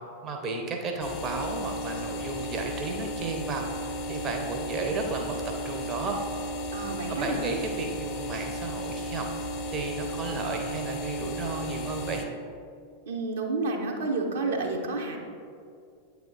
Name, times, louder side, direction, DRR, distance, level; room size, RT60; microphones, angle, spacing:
voice 1, 0.2-5.3 5.6-6.4 7.1-9.3 9.7-12.3, right 3 dB, 30° right, 2 dB, 0.7 m, -33 dB
sound 1, 1.0-12.3, equal, 40° left, 0.6 m, -34 dB
voice 2, 6.7-7.6 13.1-15.2, right 3 dB, 60° right, 0 dB, 0.8 m, -30 dB
8.1 x 3.5 x 3.9 m, 2.3 s
figure-of-eight pair, 90°, 0 cm